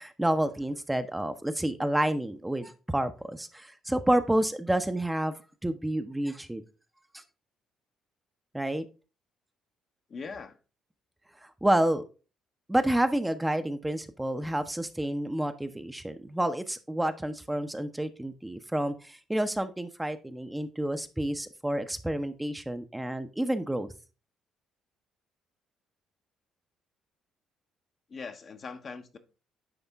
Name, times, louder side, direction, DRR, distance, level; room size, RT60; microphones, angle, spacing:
voice 1, 0.0-6.6 7.1-7.2 8.5-8.8 11.6-12.0 12.7-23.9, right 1 dB, 10° right, 0.7 m, -29 dB
voice 2, 10.1-10.6 28.1-29.2, left 5 dB, 50° left, 0.9 m, -41 dB
9.7 x 3.6 x 3.4 m
supercardioid pair, 60°, 0 cm